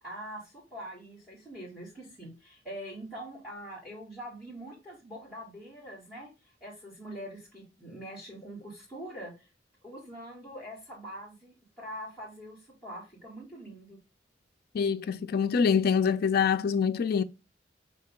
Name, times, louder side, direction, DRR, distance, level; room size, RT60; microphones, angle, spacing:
voice 1, 0.0-9.5 9.8-14.0, equal, 5° right, 1.7 m, -44 dB
voice 2, 14.7-17.2, left 6 dB, 55° left, 0.3 m, -25 dB
5.1 x 2.8 x 3.6 m
head